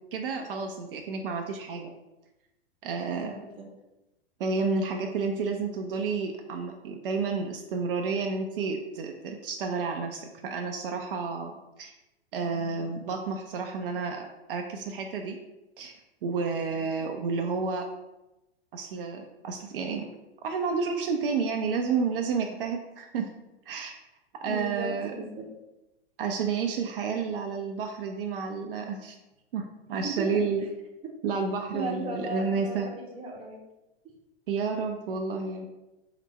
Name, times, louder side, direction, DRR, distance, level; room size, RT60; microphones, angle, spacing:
voice 1, 0.1-1.9 2.8-3.4 4.4-11.9 12.3-15.4 15.8-17.8 18.7-20.0 20.4-23.3 23.7-24.0 24.4-25.1 26.2-29.2 29.5-30.6 31.2-32.9 34.5-35.7, right 5 dB, 55° right, 3 dB, 0.5 m, -30 dB
voice 2, 3.1-3.6 24.5-25.5 30.0-30.3 31.7-33.6, right 2 dB, 15° right, -1 dB, 0.8 m, -36 dB
3.3 x 2.9 x 4.2 m, 0.97 s
figure-of-eight pair, 100°, 33 cm